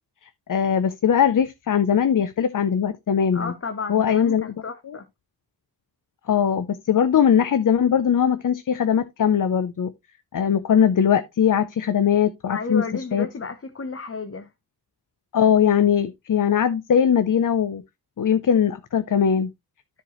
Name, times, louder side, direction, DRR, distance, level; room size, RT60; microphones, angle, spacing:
voice 1, 0.5-3.5 3.9-4.5 4.9-5.0 6.3-9.9 10.3-12.8 13.1-13.3 15.3-17.8 18.2-19.5, left 8 dB, 50° left, 0.6 m, -20 dB
voice 2, 3.3-5.0 12.5-14.5, left 4 dB, 35° left, 0.9 m, -32 dB
13.0 x 4.5 x 3.0 m
wide cardioid pair, 120°, 40 cm